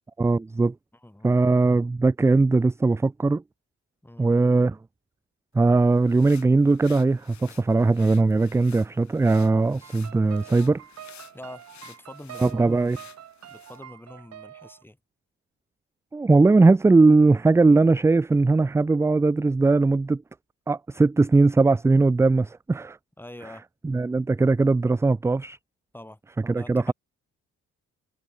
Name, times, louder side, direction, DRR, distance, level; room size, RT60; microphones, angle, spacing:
voice 1, 0.2-0.7 1.2-3.4 4.2-4.8 5.5-10.8 12.4-13.0 16.1-20.2 20.7-23.0 23.8-25.6 26.4-26.9, right 3 dB, 10° right, 0.3 m, -20 dB
voice 2, 0.9-1.4 4.0-4.4 11.3-12.7 12.9-13.1 13.5-15.0 23.2-23.6 25.9-26.2 26.5-26.9, left 1 dB, 5° left, 3.6 m, -44 dB
sound 1, 5.6-13.8, left 10 dB, 65° left, 4.1 m, -52 dB
sound 2, 9.8-14.8, right 11 dB, 60° right, 1.3 m, -45 dB
cardioid pair, 90°, 30 cm